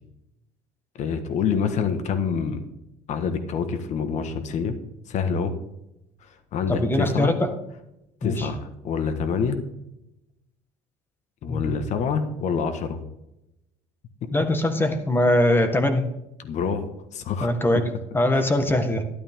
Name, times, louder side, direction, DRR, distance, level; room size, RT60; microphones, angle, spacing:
voice 1, 1.0-2.6 3.1-4.7 5.1-5.5 6.5-7.3 8.2-9.6 11.4-13.0 16.4-17.5 18.3-18.4, left 6 dB, 55° left, 9 dB, 1.5 m, -26 dB
voice 2, 6.7-7.5 8.2-8.5 11.5-11.7 14.3-16.0 17.4-17.8 18.1-19.0, left 1 dB, 15° left, 7 dB, 1.6 m, -22 dB
12.5 x 12.0 x 3.7 m, 0.86 s
cardioid pair, 120°, 15 cm